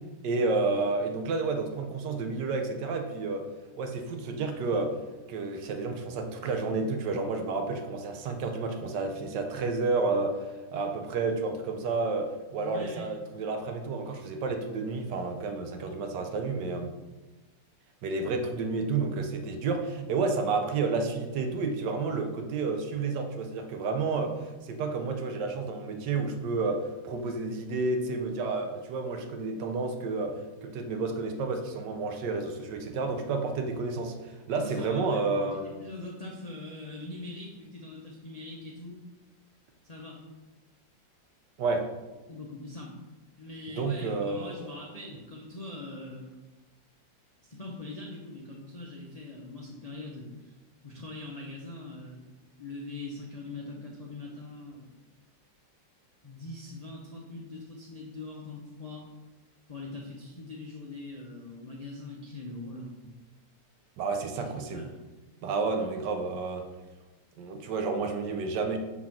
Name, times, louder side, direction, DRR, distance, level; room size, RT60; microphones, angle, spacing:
voice 1, 0.2-3.5 3.8-4.9 5.3-16.9 18.0-35.8 41.6-41.9 43.8-44.6 64.0-64.9 65.4-66.7 67.4-68.8, right 3 dB, 70° right, 5 dB, 1.3 m, -30 dB
voice 2, 12.6-13.1 34.6-39.0 39.8-40.2 42.3-42.9 43.4-46.3 47.5-50.5 50.8-52.2 52.6-55.0 56.2-59.0 59.7-63.0 64.4-64.9, left 2 dB, 60° left, -2 dB, 0.4 m, -42 dB
4.8 x 4.0 x 5.8 m, 1.2 s
omnidirectional pair, 2.0 m